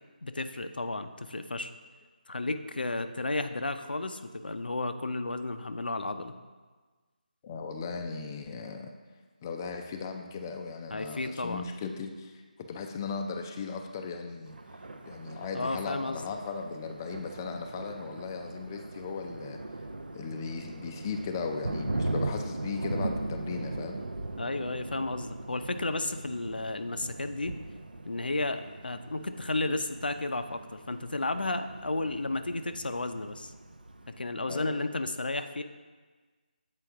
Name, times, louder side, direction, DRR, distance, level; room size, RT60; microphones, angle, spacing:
voice 1, 0.2-1.7 2.3-6.3 10.9-11.6 15.5-16.3 24.4-27.6 28.0-33.5 34.1-35.6, left 2 dB, 85° left, 8 dB, 0.5 m, -33 dB
voice 2, 7.4-8.9 9.4-12.3 12.6-14.6 15.1-19.6 20.1-24.0 34.5-34.7, left 5 dB, 20° left, 4 dB, 0.3 m, -37 dB
Thunder, 14.5-34.2, right 2 dB, 80° right, 0.5 m, -39 dB
7.6 x 4.5 x 3.5 m, 1.4 s
figure-of-eight pair, 160°, 5 cm